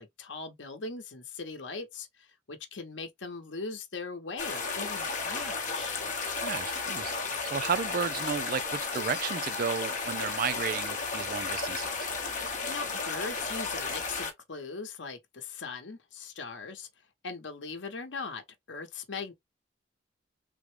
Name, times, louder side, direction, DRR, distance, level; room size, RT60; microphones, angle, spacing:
voice 1, 0.0-6.0 12.7-16.9 17.2-18.4 18.7-19.3, left 4 dB, 75° left, 0.8 m, -40 dB
sound 1, 4.4-14.3, left 4 dB, 45° left, 0.9 m, -33 dB
voice 2, 6.4-12.1, right 6 dB, 50° right, 0.4 m, -33 dB
3.5 x 2.1 x 3.2 m
head